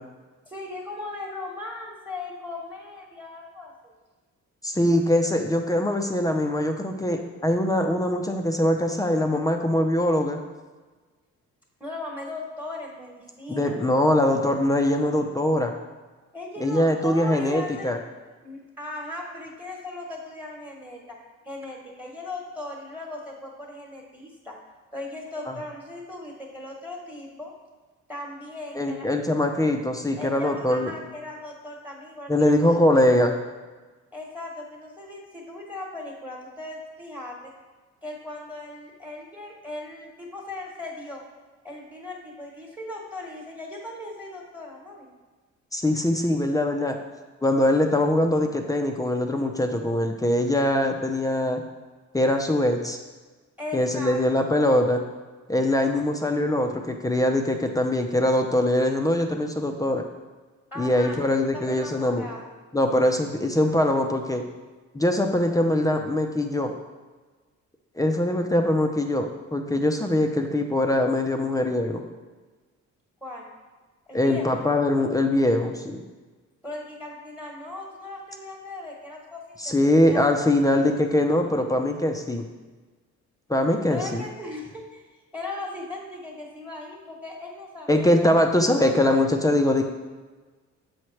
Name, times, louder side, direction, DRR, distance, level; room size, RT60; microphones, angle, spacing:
voice 1, 0.5-3.9 11.8-13.8 16.3-17.9 18.4-21.2 21.4-24.6 24.9-27.5 28.1-29.1 30.2-33.0 34.1-37.5 38.0-41.2 41.6-45.1 53.6-54.2 60.7-62.5 73.2-73.5 74.1-74.6 76.6-80.4 83.9-85.1 85.3-89.2, left 2 dB, 5° right, -1 dB, 1.3 m, -38 dB
voice 2, 4.6-10.4 13.5-15.7 16.6-18.0 25.5-25.6 28.8-30.9 32.3-33.3 45.7-47.0 47.4-51.6 52.1-53.0 53.7-55.0 55.5-60.0 60.8-62.2 62.7-64.4 64.9-66.7 68.0-72.0 74.1-76.0 79.6-82.5 83.5-84.2 87.9-89.8, left 1 dB, 10° left, 4 dB, 0.5 m, -22 dB
7.1 x 4.5 x 3.2 m, 1.3 s
cardioid pair, 90°, 30 cm